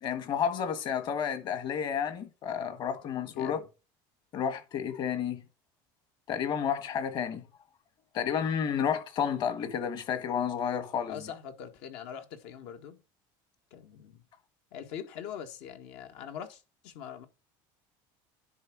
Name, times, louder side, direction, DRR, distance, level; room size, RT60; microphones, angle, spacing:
voice 1, 0.0-3.6 4.3-5.4 6.3-7.4 8.1-11.2, left 8 dB, 45° left, 1.7 m, -31 dB
voice 2, 3.2-3.6 11.1-13.0 13.7-14.2 14.7-17.3, left 8 dB, 70° left, 1.6 m, -43 dB
10.5 x 3.6 x 6.1 m
cardioid pair, 130°, 11 cm